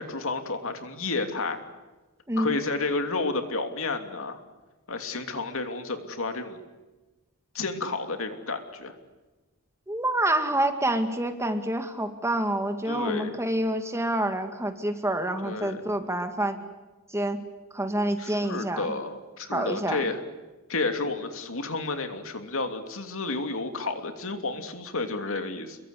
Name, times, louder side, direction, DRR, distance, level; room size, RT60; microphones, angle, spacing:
voice 1, 0.0-1.6 2.4-4.4 4.9-6.6 7.5-8.9 12.9-13.4 15.4-15.8 18.2-20.2 20.7-25.8, left 3 dB, 65° left, 6 dB, 3.0 m, -31 dB
voice 2, 9.9-16.6 17.1-17.4 17.7-18.9 19.5-20.0, right 1 dB, 15° right, 7 dB, 2.1 m, -27 dB
29.0 x 23.0 x 8.5 m, 1.2 s
head